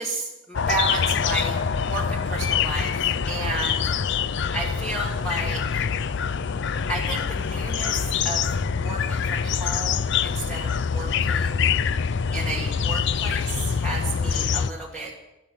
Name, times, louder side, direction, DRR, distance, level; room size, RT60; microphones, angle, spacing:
voice 1, 0.0-3.9 4.5-5.8 6.9-11.6 12.3-15.1, right 2 dB, 5° left, -3 dB, 1.8 m, -32 dB
sound 1, 0.5-14.7, left 6 dB, 55° left, 0.5 m, -25 dB
14.0 x 12.5 x 7.7 m, 0.96 s
head